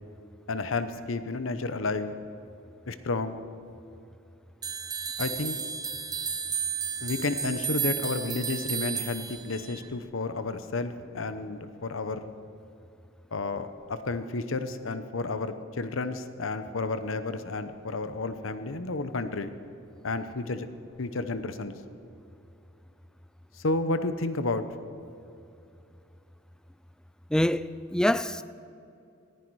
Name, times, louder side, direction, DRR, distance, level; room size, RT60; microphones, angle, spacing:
voice 1, 0.5-2.1 2.9-3.4 5.2-5.6 7.0-12.2 13.3-19.5 20.0-20.7 21.0-21.8 23.6-24.7, left 3 dB, 80° left, 0.8 m, -31 dB
sound 1, 4.6-9.8, right 7 dB, 20° right, 0.7 m, -33 dB
voice 2, 27.3-28.4, left 1 dB, 5° left, 0.3 m, -25 dB
19.5 x 15.0 x 4.8 m
head